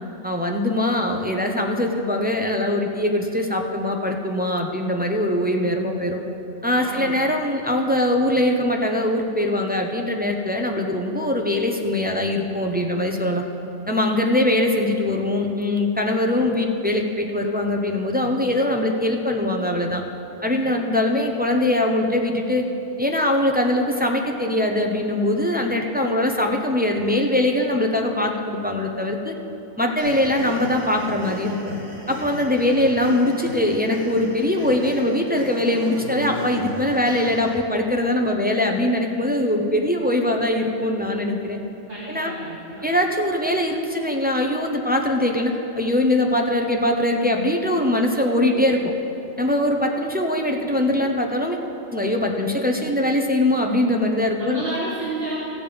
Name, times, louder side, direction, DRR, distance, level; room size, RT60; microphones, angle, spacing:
voice 1, 0.2-6.2 6.6-13.4 13.9-20.0 20.4-22.7 23.0-29.3 29.8-31.7 32.1-41.6 42.1-42.3 42.8-48.9 49.4-51.6 51.9-54.6, left 1 dB, 10° right, 1 dB, 0.5 m, -22 dB
voice 2, 6.8-7.2 41.9-42.9 54.4-55.4, right 2 dB, 50° right, -7 dB, 1.8 m, -31 dB
sound 1, 30.0-37.6, equal, 70° right, 2.3 m, -36 dB
15.5 x 7.3 x 5.2 m, 3.0 s
omnidirectional pair, 1.3 m